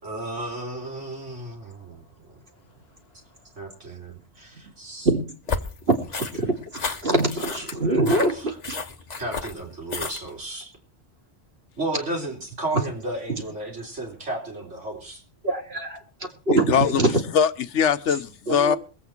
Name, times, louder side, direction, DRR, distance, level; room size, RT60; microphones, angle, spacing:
voice 1, 0.0-2.0 3.6-5.1 7.4-8.6 9.2-10.7 11.8-15.2, right 2 dB, 85° right, 4.1 m, -34 dB
sound 1, 5.5-10.4, left 4 dB, 40° left, 1.1 m, -32 dB
voice 2, 7.0-8.8 15.4-17.2 18.5-18.8, right 2 dB, 60° right, 2.6 m, -23 dB
voice 3, 16.5-18.8, left 8 dB, 80° left, 1.2 m, -22 dB
22.5 x 8.4 x 4.5 m
omnidirectional pair, 1.2 m